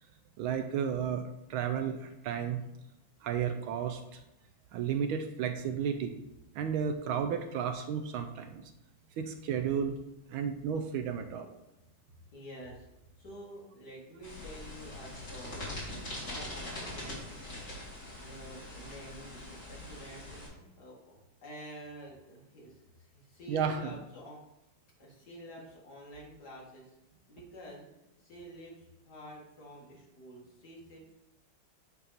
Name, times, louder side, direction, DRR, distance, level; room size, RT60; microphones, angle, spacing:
voice 1, 0.4-1.2 1.5-2.6 3.2-4.2 4.7-6.1 6.5-8.6 9.2-9.9 10.3-11.5 23.5-23.9, right 7 dB, 75° right, 6 dB, 1.3 m, -33 dB
voice 2, 12.3-12.9 13.2-17.3 18.2-24.4 24.8-27.0 27.3-27.9 28.2-31.1, equal, 50° left, -3 dB, 2.2 m, -49 dB
sound 1, 14.2-20.5, left 1 dB, 35° left, 2.8 m, -42 dB
9.5 x 3.6 x 4.1 m, 0.92 s
omnidirectional pair, 2.4 m